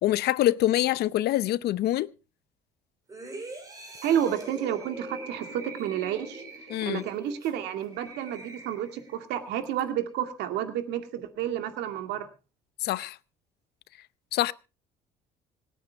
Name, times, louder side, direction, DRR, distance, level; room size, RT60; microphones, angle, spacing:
voice 1, 0.0-2.1 6.7-7.0 12.8-13.2 14.3-14.5, left 14 dB, 70° left, 0.7 m, -25 dB
sound 1, 3.1-9.2 9.6-9.8, right 2 dB, 20° right, 5.7 m, -43 dB
voice 2, 4.0-6.4 6.8-12.3, right 10 dB, 85° right, 2.3 m, -30 dB
26.0 x 9.4 x 3.5 m
cardioid pair, 110°, 17 cm